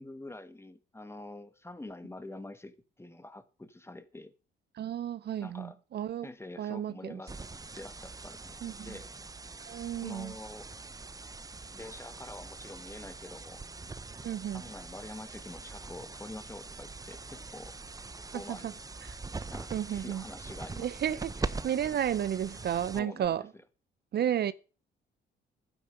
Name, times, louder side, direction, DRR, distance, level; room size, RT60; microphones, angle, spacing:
voice 1, 0.0-4.3 5.4-5.8 6.2-7.3 7.8-9.1 10.0-10.7 11.7-13.6 14.5-17.8 18.3-18.7 19.4-20.9 22.9-23.3, left 2 dB, 10° left, 1.6 m, -46 dB
voice 2, 4.8-6.3 6.6-7.2 8.6-9.0 9.7-10.3 14.2-14.6 18.3-18.7 19.0-19.2 19.7-20.2 20.8-23.4 24.1-24.5, right 10 dB, 55° right, 0.7 m, -32 dB
sound 1, 7.3-23.3, right 3 dB, 20° right, 0.8 m, -43 dB
12.0 x 10.0 x 5.2 m
cardioid pair, 90°, 20 cm